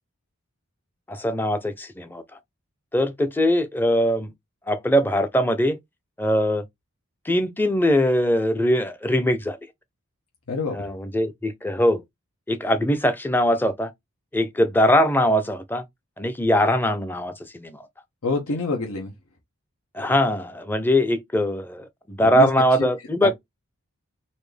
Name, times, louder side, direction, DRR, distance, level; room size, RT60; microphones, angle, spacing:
voice 1, 1.1-2.2 2.9-4.3 4.7-5.8 6.2-6.6 7.3-9.6 10.7-12.0 12.5-13.9 14.3-15.8 16.2-17.8 19.9-23.3, equal, 10° left, 0.5 m, -21 dB
voice 2, 18.2-19.1 22.2-22.5 22.8-22.9 23.2-23.3, left 3 dB, 85° left, 1.0 m, -26 dB
4.2 x 2.6 x 3.3 m
head